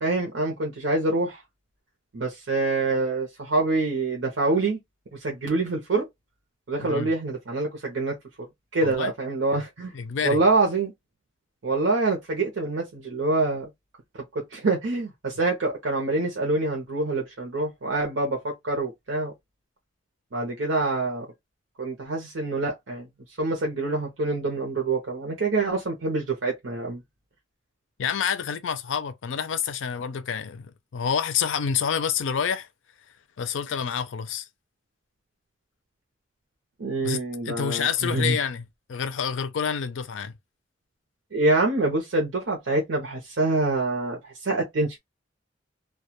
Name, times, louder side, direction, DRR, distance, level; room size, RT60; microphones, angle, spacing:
voice 1, 0.0-1.4 2.1-4.8 5.1-6.1 6.7-8.2 8.7-9.9 10.2-10.9 11.6-13.7 14.3-19.3 20.3-21.3 21.8-23.1 23.4-27.0 36.8-38.4 41.3-45.0, right 2 dB, 85° right, 0.7 m, -26 dB
voice 2, 6.8-7.1 8.8-9.1 9.9-10.4 28.0-32.7 33.4-34.5 37.0-40.3, left 7 dB, 85° left, 0.4 m, -28 dB
2.2 x 2.1 x 2.9 m
head